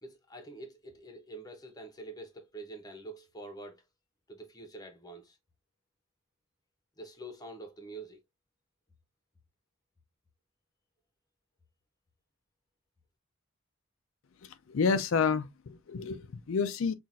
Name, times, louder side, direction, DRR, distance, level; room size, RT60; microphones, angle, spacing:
voice 1, 0.0-3.8 4.3-5.4 7.0-8.2, right 2 dB, 20° left, 0.8 m, -46 dB
voice 2, 14.4-16.9, left 5 dB, 70° left, 0.4 m, -29 dB
5.6 x 2.5 x 2.5 m
head